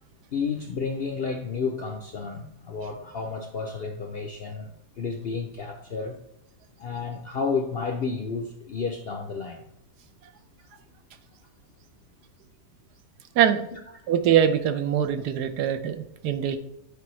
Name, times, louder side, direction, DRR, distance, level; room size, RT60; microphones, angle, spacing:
voice 1, 0.3-6.2 6.8-9.6 10.6-10.7 13.7-13.8, left 5 dB, 65° left, 0.6 m, -31 dB
voice 2, 13.3-13.7 14.1-16.6, right 9 dB, 90° right, 1.2 m, -23 dB
8.7 x 4.5 x 3.1 m
omnidirectional pair, 1.7 m